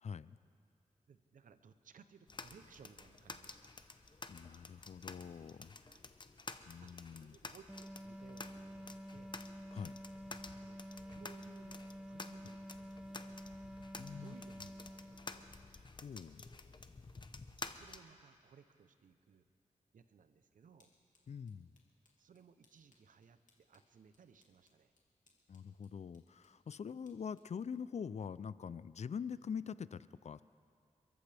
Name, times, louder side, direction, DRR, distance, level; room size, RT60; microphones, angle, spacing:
voice 1, 0.0-0.4 4.3-5.8 6.7-7.4 9.7-10.0 14.0-14.3 16.0-16.5 21.3-21.7 25.5-30.4, left 6 dB, 60° left, 17 dB, 0.4 m, -44 dB
voice 2, 1.1-3.7 5.8-6.0 6.8-6.9 7.2-9.4 10.6-10.8 11.1-13.4 14.1-15.5 17.6-19.4 19.9-20.9 22.2-24.9, right 6 dB, 90° right, 11 dB, 0.7 m, -62 dB
sound 1, 2.3-18.0, left 3 dB, 35° left, 0.8 m, -52 dB
sound 2, 7.7-15.8, equal, 5° right, 0.5 m, -50 dB
sound 3, 20.8-28.8, left 3 dB, 75° left, 2.5 m, -77 dB
28.5 x 14.0 x 3.4 m, 2.3 s
cardioid pair, 60°, 13 cm